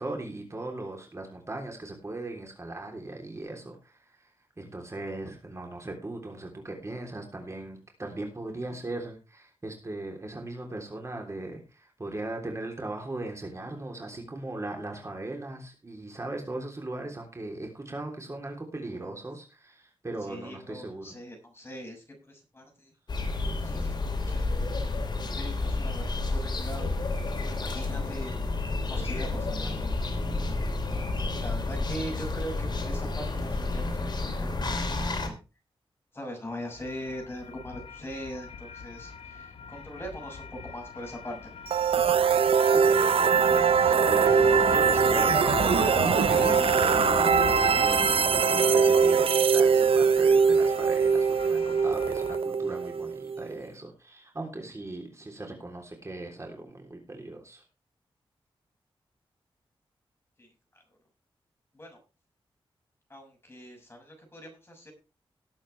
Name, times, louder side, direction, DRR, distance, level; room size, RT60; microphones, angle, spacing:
voice 1, 0.0-21.2 42.2-57.6, right 2 dB, 30° right, 2 dB, 3.4 m, -38 dB
voice 2, 20.3-22.9 23.6-23.9 24.3-31.1 31.4-35.4 36.1-41.5 60.4-60.5 61.7-62.0 63.1-64.9, equal, 25° left, 2 dB, 6.4 m, -42 dB
sound 1, 23.1-35.3, left 3 dB, 50° left, 3.2 m, -30 dB
sound 2, 36.5-52.4, left 5 dB, 75° left, 1.3 m, -37 dB
sound 3, 41.7-53.5, right 6 dB, 75° right, 0.7 m, -22 dB
18.5 x 8.3 x 3.4 m, 0.31 s
wide cardioid pair, 85°, 10 cm